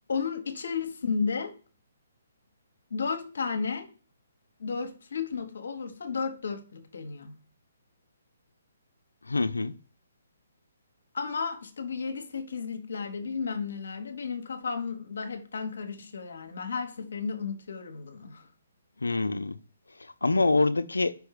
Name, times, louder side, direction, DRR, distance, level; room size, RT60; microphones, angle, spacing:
voice 1, 0.1-1.5 2.9-3.9 4.6-7.4 11.1-18.5, left 5 dB, 70° left, 1.1 m, -33 dB
voice 2, 9.2-9.7 19.0-19.6 20.0-21.2, left 3 dB, 90° left, 0.5 m, -26 dB
5.3 x 4.6 x 4.8 m
figure-of-eight pair, 140°, 0 cm